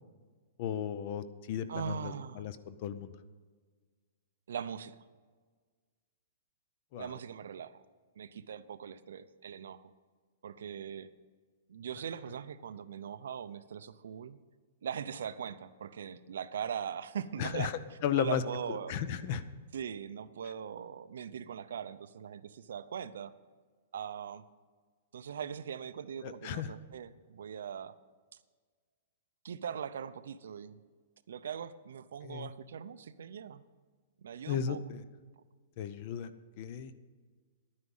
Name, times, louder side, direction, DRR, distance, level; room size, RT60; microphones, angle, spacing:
voice 1, 0.6-3.1 6.9-7.2 17.4-17.7 18.0-18.4 18.7-19.4 26.2-26.7 32.2-32.5 34.5-35.0 35.8-36.3 36.6-36.9, left 8 dB, 35° left, 14 dB, 0.5 m, -35 dB
voice 2, 1.7-2.5 4.5-5.0 7.0-7.8 8.2-9.9 10.4-11.1 11.7-14.4 14.8-17.7 18.1-18.9 19.7-23.3 23.9-24.4 25.1-27.9 29.4-30.8 31.3-33.6 34.2-34.8, right 8 dB, 70° right, 13 dB, 0.6 m, -40 dB
11.5 x 9.7 x 5.5 m, 1.5 s
hypercardioid pair, 175°, 0 cm